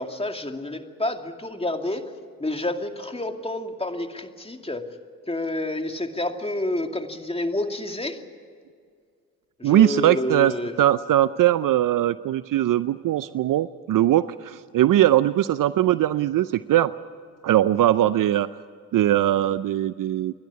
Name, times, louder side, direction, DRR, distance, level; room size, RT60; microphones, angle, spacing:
voice 1, 0.0-2.0 2.4-4.8 5.3-8.2 9.6-10.7, left 1 dB, 15° left, 5 dB, 2.4 m, -29 dB
voice 2, 9.6-16.9 17.4-18.5 18.9-20.4, right 13 dB, 60° right, 15 dB, 0.6 m, -20 dB
29.0 x 12.0 x 9.7 m, 2.1 s
supercardioid pair, 50°, 36 cm